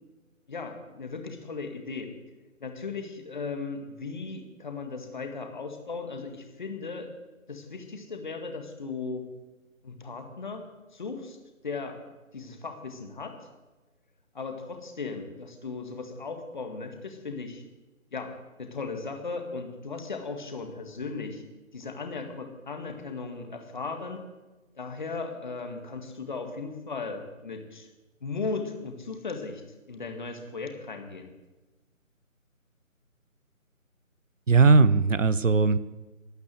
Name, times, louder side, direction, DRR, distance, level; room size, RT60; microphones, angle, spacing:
voice 1, 0.5-2.1 2.6-7.1 7.5-9.2 9.8-11.4 11.6-12.0 12.3-13.3 14.3-17.6 18.1-18.3 18.6-21.4 21.7-24.2 24.8-27.9 28.2-29.6 29.9-31.3, left 4 dB, 35° left, 5 dB, 2.0 m, -37 dB
voice 2, 34.5-35.8, right 4 dB, 60° right, 16 dB, 0.9 m, -19 dB
12.5 x 10.5 x 8.2 m, 1.1 s
figure-of-eight pair, 160°, 42 cm